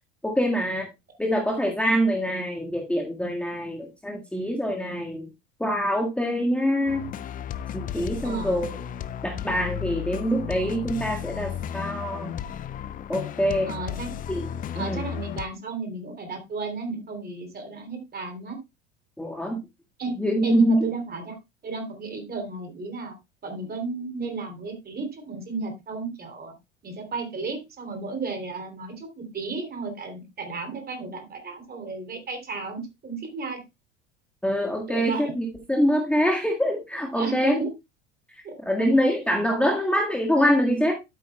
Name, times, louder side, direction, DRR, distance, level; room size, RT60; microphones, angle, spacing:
voice 1, 0.2-0.9 1.2-5.3 5.6-7.1 7.7-8.8 9.2-12.3 13.1-13.7 14.3-14.5 14.8-15.0 19.2-19.6 20.2-20.9 34.4-37.6 38.3-40.9, equal, 5° left, 0 dB, 1.7 m, -24 dB
sound 1, 6.9-15.5, left 9 dB, 25° left, 0.5 m, -34 dB
voice 2, 8.2-8.5 13.7-14.1 14.7-18.6 20.0-21.4 21.6-23.2 23.4-26.5 26.8-33.6 34.9-35.3 37.1-37.7 38.4-38.9, right 4 dB, 25° right, 5 dB, 3.1 m, -33 dB
12.5 x 8.4 x 2.3 m, 0.23 s
figure-of-eight pair, 75°, 36 cm